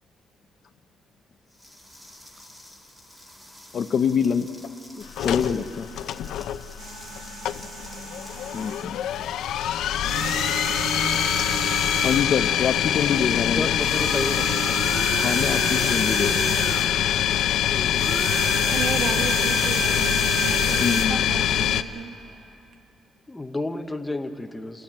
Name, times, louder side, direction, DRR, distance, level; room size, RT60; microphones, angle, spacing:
sound 1, 1.5-10.5, left 1 dB, 15° right, 2.1 m, -49 dB
voice 1, 3.7-4.5 5.0-5.9 8.5-9.0 11.4-11.5 12.0-13.7 15.2-16.6 20.8-21.4, left 7 dB, 40° left, 10 dB, 0.6 m, -25 dB
sound 2, 5.2-21.8, left 10 dB, 80° left, 0.6 m, -24 dB
sound 3, 6.8-8.9 10.0-12.4 13.7-17.0 17.9-21.1, right 3 dB, 65° right, 2.6 m, -31 dB
voice 2, 13.6-14.6 17.7-18.1 23.3-24.8, left 2 dB, 5° left, 6 dB, 0.8 m, -31 dB
voice 3, 18.7-22.2, right 5 dB, 85° right, 5 dB, 1.6 m, -33 dB
29.5 x 13.0 x 8.7 m, 2.8 s
cardioid pair, 180°, 0 cm